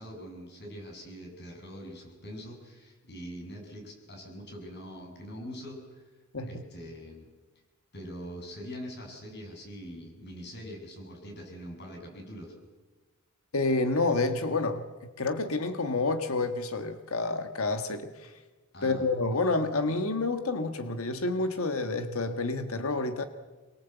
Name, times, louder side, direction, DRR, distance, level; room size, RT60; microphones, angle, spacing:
voice 1, 0.0-6.1 6.4-7.3 7.9-12.5 18.7-19.1, equal, 50° left, 2 dB, 7.3 m, -43 dB
voice 2, 13.5-14.9 15.2-18.4 18.8-23.2, left 3 dB, 75° left, 9 dB, 1.4 m, -29 dB
25.0 x 22.5 x 8.1 m, 1.3 s
head